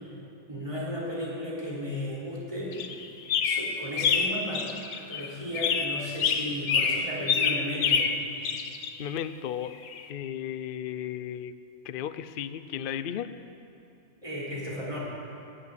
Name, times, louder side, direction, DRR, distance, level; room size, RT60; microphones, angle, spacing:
voice 1, 0.5-2.8 3.4-8.1 14.2-15.0, equal, 25° right, -6 dB, 3.7 m, -35 dB
sound 1, 2.7-5.3 5.5-9.1 9.9-10.0, left 6 dB, 75° left, 1.2 m, -27 dB
voice 2, 9.0-9.7 10.1-11.5 11.8-13.3, left 10 dB, 60° left, 12 dB, 0.6 m, -34 dB
16.5 x 7.4 x 9.7 m, 2.9 s
omnidirectional pair, 1.4 m